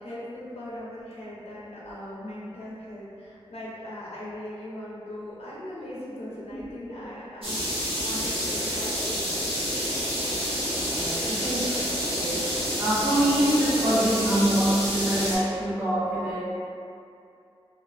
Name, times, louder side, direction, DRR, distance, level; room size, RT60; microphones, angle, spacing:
voice 1, 0.0-7.6 8.0-9.7, left 1 dB, 75° left, -8 dB, 0.6 m, -39 dB
sound 1, 7.4-15.4, equal, 65° right, 1.0 m, -28 dB
voice 2, 10.7-16.4, right 1 dB, 15° right, -13 dB, 0.9 m, -25 dB
2.4 x 2.2 x 2.4 m, 2.5 s
wide cardioid pair, 90°, 10 cm